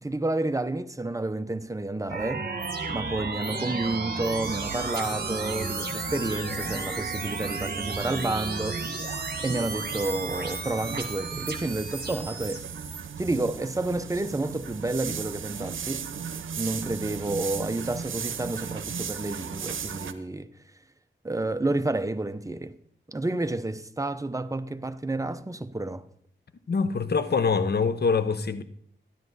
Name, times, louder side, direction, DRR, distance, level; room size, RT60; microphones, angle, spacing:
voice 1, 0.0-2.5 2.9-8.8 9.4-12.6 13.2-16.1 16.6-20.5 21.2-22.8 23.1-26.0, right 2 dB, 15° right, 0.6 m, -30 dB
sound 1, 2.1-13.0, right 3 dB, 50° right, 1.7 m, -33 dB
sound 2, 4.4-20.1, right 7 dB, 85° right, 0.7 m, -37 dB
voice 2, 26.7-28.6, left 5 dB, 55° left, 0.9 m, -24 dB
12.5 x 11.0 x 4.1 m
cardioid pair, 70°, 20 cm